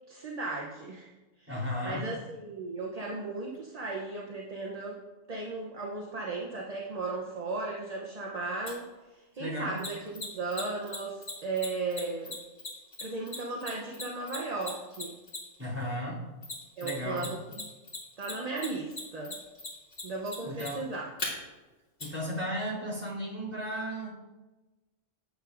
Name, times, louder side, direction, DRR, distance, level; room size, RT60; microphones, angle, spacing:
voice 1, 0.1-1.1 1.4-5.0 5.3-12.4 13.0-15.1 16.8-17.7 18.2-19.4 20.0-21.1, right 3 dB, 40° right, -2 dB, 0.7 m, -36 dB
voice 2, 1.5-2.1 9.4-9.8 15.6-16.3 16.8-17.3 20.4-20.8 22.0-24.1, equal, 10° right, -9 dB, 2.9 m, -35 dB
Mechanisms, 8.7-8.8 9.8-15.6 16.4-17.3 17.5-21.3 22.0-22.1, left 3 dB, 60° left, 2.9 m, -38 dB
9.1 x 8.2 x 2.5 m, 1.2 s
omnidirectional pair, 1.3 m